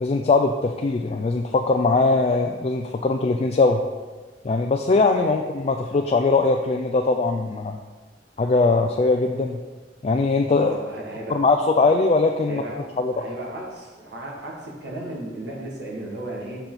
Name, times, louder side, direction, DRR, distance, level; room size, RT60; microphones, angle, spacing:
voice 1, 0.0-3.8 4.4-7.8 8.4-9.6 10.0-10.7 11.3-12.6 13.0-13.2, left 3 dB, 35° left, 4 dB, 0.3 m, -21 dB
voice 2, 10.6-11.4 12.5-16.6, right 1 dB, 75° right, -3 dB, 1.6 m, -35 dB
6.8 x 5.6 x 3.9 m, 1.3 s
head